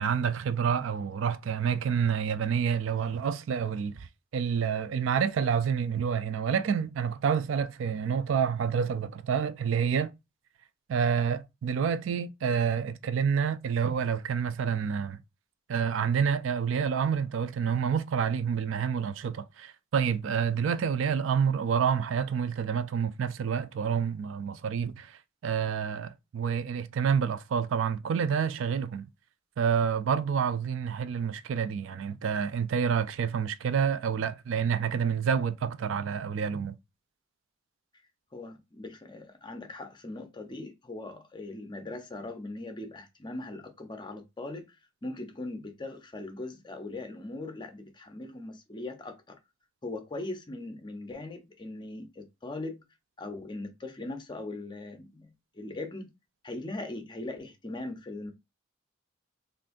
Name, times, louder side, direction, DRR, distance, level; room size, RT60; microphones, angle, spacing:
voice 1, 0.0-4.1 4.3-10.2 10.9-15.2 15.7-29.1 29.6-36.8, right 7 dB, 70° right, 0.3 m, -28 dB
voice 2, 38.3-49.4 49.8-52.8 53.2-55.3 55.5-56.1 56.4-58.3, left 2 dB, 25° left, 0.6 m, -40 dB
3.7 x 2.5 x 2.5 m
head